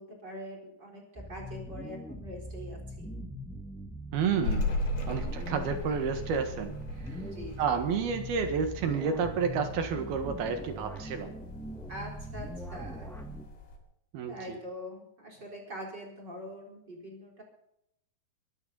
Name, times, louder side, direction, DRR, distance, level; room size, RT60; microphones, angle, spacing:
voice 1, 0.0-3.1 5.0-5.5 7.1-7.8 11.9-13.1 14.3-17.4, equal, 25° right, 1 dB, 4.4 m, -44 dB
sound 1, 1.2-13.5, equal, ahead, 1.4 m, -42 dB
voice 2, 4.1-4.7 5.1-6.7 7.6-11.4 14.1-14.6, right 6 dB, 70° right, 6 dB, 3.4 m, -30 dB
sound 2, 4.4-13.8, left 2 dB, 80° left, 5.2 m, -38 dB
23.5 x 12.0 x 4.0 m, 0.78 s
omnidirectional pair, 4.8 m